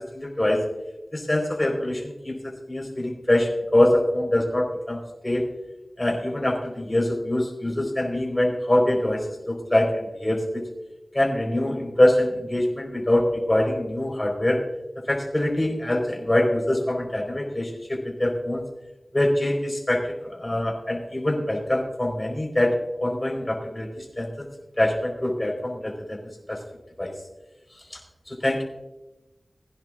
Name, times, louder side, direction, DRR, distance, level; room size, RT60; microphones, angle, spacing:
voice 1, 0.1-0.6 1.1-2.4 2.7-5.5 6.0-10.6 11.1-14.6 15.1-18.6 19.1-24.4 24.8-26.2 26.5-26.6 27.0-27.1 27.9-28.0 28.3-28.6, left 1 dB, 25° left, 1 dB, 4.4 m, -24 dB
21.5 x 10.5 x 2.5 m, 1.0 s
wide cardioid pair, 55°, 0 cm